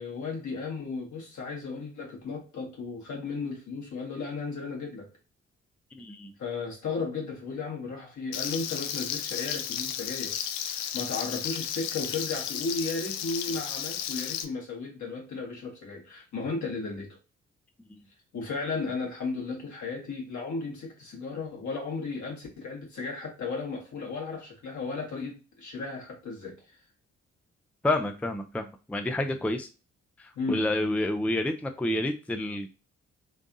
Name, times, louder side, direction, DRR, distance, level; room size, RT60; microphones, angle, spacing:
voice 1, 0.0-5.1 6.4-10.4 10.7-17.2 18.3-26.8 30.3-30.6, left 4 dB, 60° left, 1.8 m, -35 dB
voice 2, 5.9-6.3 17.9-18.0 27.8-29.7 30.2-32.7, left 1 dB, 5° left, 0.5 m, -29 dB
Frying (food), 8.3-14.4, left 9 dB, 80° left, 0.5 m, -33 dB
3.8 x 3.5 x 2.6 m
hypercardioid pair, 45°, 32 cm